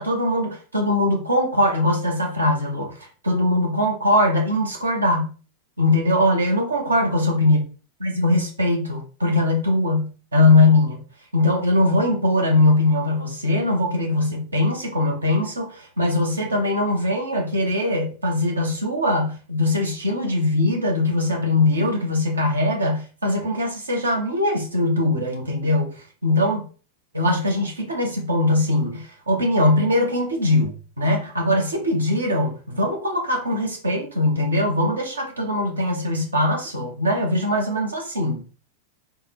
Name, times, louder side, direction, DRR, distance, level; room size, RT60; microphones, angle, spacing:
voice 1, 0.0-5.3 5.8-7.6 8.0-11.0 11.3-26.6 27.1-38.4, left 1 dB, 75° right, 0.9 m, -21 dB
3.7 x 2.2 x 4.2 m
figure-of-eight pair, 90°, 0 cm